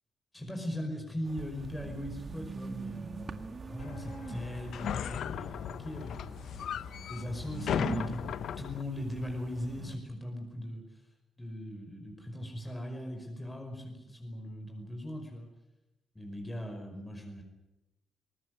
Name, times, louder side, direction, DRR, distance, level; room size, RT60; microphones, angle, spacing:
voice 1, 0.3-8.2 8.6-11.0 11.4-15.5 16.2-17.4, left 1 dB, 10° left, 3 dB, 5.3 m, -39 dB
sound 1, 1.2-10.0, right 4 dB, 35° right, 2.0 m, -44 dB
sound 2, 3.8-8.8, left 9 dB, 80° left, 0.7 m, -37 dB
21.5 x 19.0 x 9.7 m, 0.95 s
cardioid pair, 130°, 0 cm